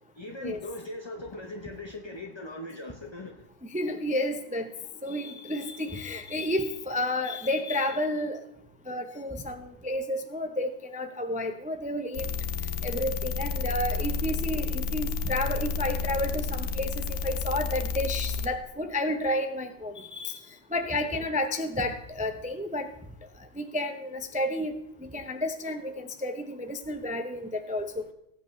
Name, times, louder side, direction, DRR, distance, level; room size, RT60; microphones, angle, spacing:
voice 1, 0.1-3.5 21.0-21.3, left 1 dB, 25° left, 3 dB, 0.7 m, -40 dB
voice 2, 3.7-4.7 5.0-8.4 8.9-12.3 12.8-20.4 20.7-22.9 23.6-24.8 25.1-28.0, left 1 dB, 10° right, 6 dB, 0.5 m, -31 dB
sound 1, 12.1-18.5, left 5 dB, 65° left, 1.1 m, -31 dB
19.0 x 8.2 x 3.2 m, 0.78 s
omnidirectional pair, 1.4 m